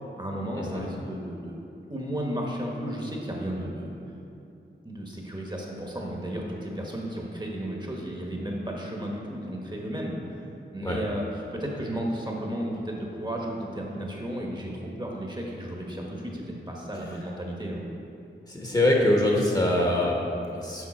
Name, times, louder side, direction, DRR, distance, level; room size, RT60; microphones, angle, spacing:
voice 1, 0.2-1.6 1.9-3.9 4.8-10.4 10.7-11.2 11.5-17.8, right 1 dB, 20° right, -1 dB, 1.1 m, -33 dB
voice 2, 18.5-20.9, left 1 dB, 20° left, -2 dB, 1.0 m, -24 dB
7.3 x 5.5 x 4.3 m, 2.7 s
wide cardioid pair, 80°, 20 cm